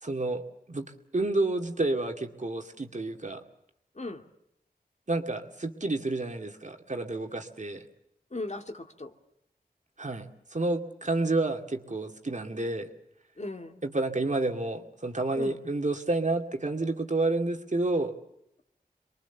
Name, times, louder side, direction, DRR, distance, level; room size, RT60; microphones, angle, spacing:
voice 1, 0.0-0.4 0.7-3.4 5.1-7.9 10.0-12.9 13.8-18.2, right 2 dB, 50° right, 4 dB, 2.3 m, -30 dB
voice 2, 3.9-4.3 8.3-9.1 13.4-13.8 15.3-15.6, left 2 dB, 45° left, 5 dB, 2.2 m, -37 dB
27.5 x 22.5 x 7.0 m, 0.82 s
wide cardioid pair, 70°, 16 cm